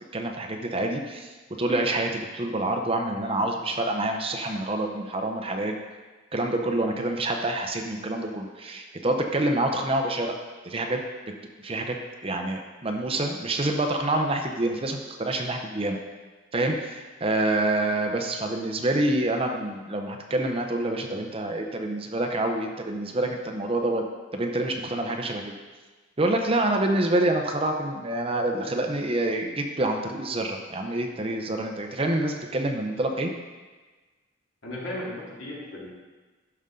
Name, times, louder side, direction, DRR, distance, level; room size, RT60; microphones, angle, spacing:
voice 1, 0.1-5.8 6.3-10.3 10.6-11.0 11.6-12.0 12.2-16.0 16.5-24.0 24.3-25.5 26.2-33.3, right 1 dB, 25° right, 3 dB, 0.7 m, -27 dB
voice 2, 34.6-36.0, left 1 dB, 70° left, -5 dB, 2.5 m, -36 dB
12.0 x 5.3 x 3.7 m, 1.3 s
head